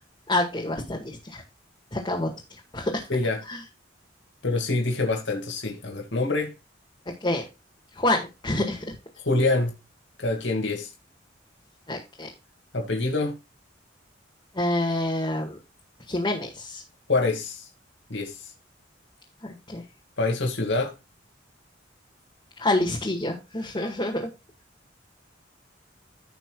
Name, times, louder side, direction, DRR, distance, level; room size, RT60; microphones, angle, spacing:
voice 1, 0.3-1.4 1.9-3.0 3.5-3.6 7.2-7.4 8.0-9.0 11.9-12.3 14.5-15.6 16.1-16.8 19.7-19.8 22.6-24.3, left 1 dB, 25° left, 2.0 m, -27 dB
voice 2, 3.1-3.4 4.4-6.5 9.2-9.7 10.2-10.9 12.7-13.4 17.1-17.7 18.1-18.4 20.2-20.9, left 2 dB, 70° left, 2.4 m, -25 dB
15.5 x 5.9 x 2.4 m
head